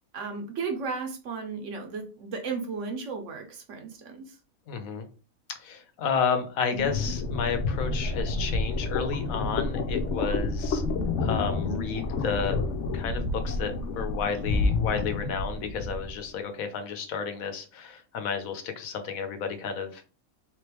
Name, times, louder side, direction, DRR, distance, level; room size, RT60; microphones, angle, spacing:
voice 1, 0.1-4.3, right 4 dB, 65° right, 5 dB, 1.1 m, -34 dB
voice 2, 4.7-5.1 5.5-10.8 11.2-12.6 12.9-20.0, left 6 dB, 85° left, 7 dB, 1.2 m, -31 dB
sound 1, 6.7-16.1, left 3 dB, 65° left, 0.9 m, -29 dB
3.7 x 3.0 x 3.3 m, 0.37 s
omnidirectional pair, 1.4 m